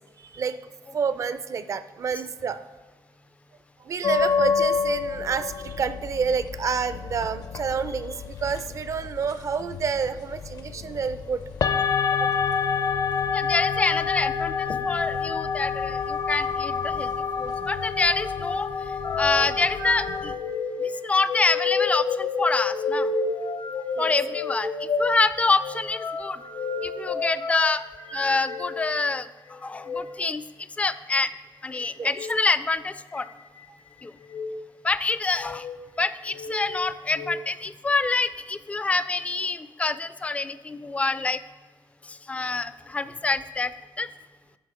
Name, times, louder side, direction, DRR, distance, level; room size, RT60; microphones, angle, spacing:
voice 1, 0.2-2.7 3.8-11.4 12.2-12.3 24.0-24.1 32.0-32.1, right 6 dB, 40° right, 13 dB, 0.5 m, -29 dB
sound 1, 4.0-20.3, left 6 dB, 55° left, 0.6 m, -28 dB
voice 2, 13.3-18.7 19.2-20.3 20.8-23.1 24.0-26.4 26.8-27.8 28.1-30.4 30.8-31.3 31.6-33.3 34.0-34.1 34.8-35.7 36.0-41.4 42.0-43.7 44.0-44.1, left 3 dB, 15° left, 14 dB, 0.4 m, -26 dB
sound 2, 19.0-29.0 29.7-30.0 32.0-32.3 33.1-33.7 34.2-34.5 35.3-35.8 36.3-37.3, left 4 dB, 80° left, 1.0 m, -30 dB
9.2 x 6.1 x 4.9 m, 1.3 s
cardioid pair, 130°, 8 cm